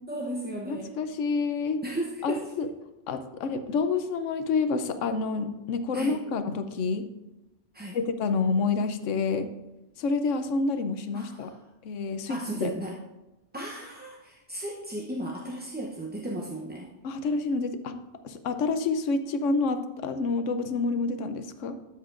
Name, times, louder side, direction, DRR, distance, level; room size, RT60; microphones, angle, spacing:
voice 1, 0.1-0.9 1.8-2.5 5.9-6.2 7.7-8.0 11.1-11.6 12.3-13.0 13.5-16.9, right 1 dB, 10° right, -3 dB, 0.6 m, -35 dB
voice 2, 0.7-1.8 2.2-2.7 3.1-7.0 7.9-9.5 10.0-11.5 11.8-12.7 17.0-17.9 18.2-21.7, left 4 dB, 85° left, 9 dB, 1.0 m, -28 dB
12.5 x 7.3 x 2.5 m, 1.0 s
omnidirectional pair, 1.2 m